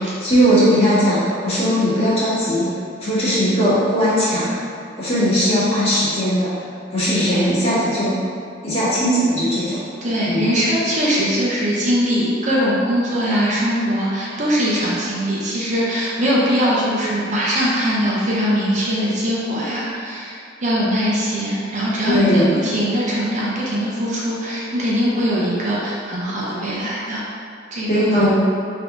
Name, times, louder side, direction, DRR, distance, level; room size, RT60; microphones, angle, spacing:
voice 1, 0.0-2.7 3.0-4.5 5.0-6.5 6.9-8.2 8.6-9.8 10.2-10.5 22.1-22.5 27.9-28.3, equal, 35° left, -11 dB, 1.5 m, -18 dB
voice 2, 10.0-27.2 27.7-27.9, equal, 40° right, -6 dB, 0.7 m, -21 dB
3.8 x 2.8 x 3.8 m, 2.4 s
head